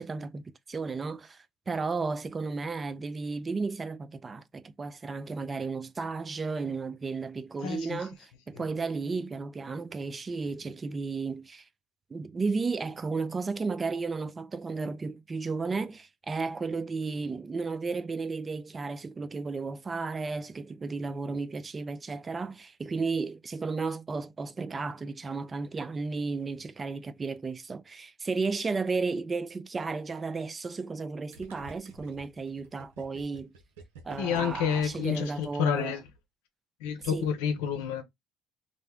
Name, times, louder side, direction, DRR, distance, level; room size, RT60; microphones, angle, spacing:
voice 1, 0.0-11.6 12.1-33.5 34.0-36.0 37.1-37.3, right 4 dB, 30° right, 0.4 m, -33 dB
voice 2, 7.6-8.0 8.5-8.6 34.2-36.0 36.8-38.0, left 8 dB, 85° left, 0.6 m, -29 dB
Gurgling, 31.3-36.0, right 4 dB, 90° right, 0.6 m, -49 dB
2.6 x 2.1 x 3.3 m
supercardioid pair, 75°, 0 cm